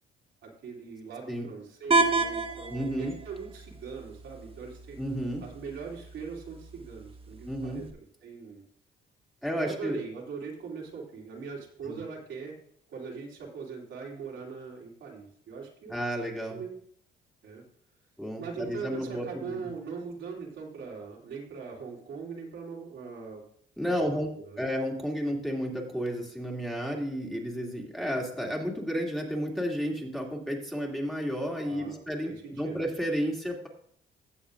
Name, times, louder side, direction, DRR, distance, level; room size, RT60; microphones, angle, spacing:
voice 1, 0.4-5.0 5.4-7.9 8.2-8.6 9.6-12.5 12.9-16.0 16.5-16.8 17.4-17.6 18.4-23.4 23.8-24.6 31.6-32.8, right 5 dB, 75° right, -2 dB, 2.9 m, -41 dB
sound 1, 1.9-7.9, right 3 dB, 30° right, 1.3 m, -32 dB
voice 2, 2.7-3.2 5.0-5.4 7.5-7.9 9.4-10.0 11.9-12.0 15.9-16.6 18.2-19.7 23.8-24.3 24.6-33.7, equal, ahead, -1 dB, 2.4 m, -32 dB
16.0 x 7.1 x 2.5 m, 0.63 s
cardioid pair, 90°, 20 cm